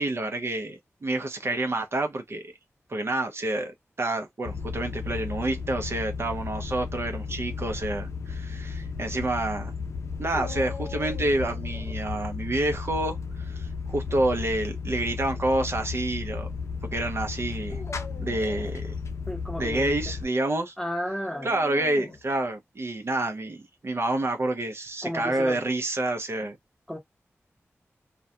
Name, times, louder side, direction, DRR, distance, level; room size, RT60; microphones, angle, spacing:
voice 1, 0.0-2.5 2.9-9.7 10.2-16.5 16.9-17.8 18.2-18.9 19.6-20.7 21.4-26.6, right 2 dB, 55° right, 0.6 m, -28 dB
sound 1, 4.4-20.3, left 5 dB, 65° left, 0.5 m, -34 dB
Dog, 10.3-12.0 14.1-14.6 15.3-15.4 17.6-18.8 21.3-22.3, left 4 dB, 40° left, 0.8 m, -42 dB
voice 2, 19.3-20.0 20.8-21.9 25.0-25.6 26.9-27.0, equal, 5° left, 0.8 m, -33 dB
2.3 x 2.2 x 2.7 m
wide cardioid pair, 70°, 5 cm